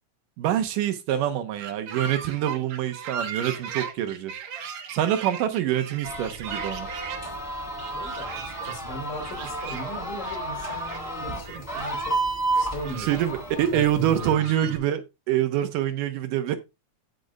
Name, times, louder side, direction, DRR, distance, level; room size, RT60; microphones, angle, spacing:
voice 1, 0.4-4.3 4.9-6.9 13.0-16.6, right 11 dB, 85° right, 2.6 m, -25 dB
sound 1, 1.6-7.2 7.8-8.8 9.0-10.0 10.2-11.0 11.4-12.1 12.5-13.3 13.6-13.7 14.0-14.8, right 7 dB, 65° right, 2.2 m, -37 dB
sound 2, 6.0-14.3, right 2 dB, 15° left, 2.2 m, -32 dB
voice 2, 7.7-12.2 12.5-13.2 13.6-14.7, right 1 dB, 85° left, 4.3 m, -38 dB
15.5 x 5.3 x 2.3 m
omnidirectional pair, 3.6 m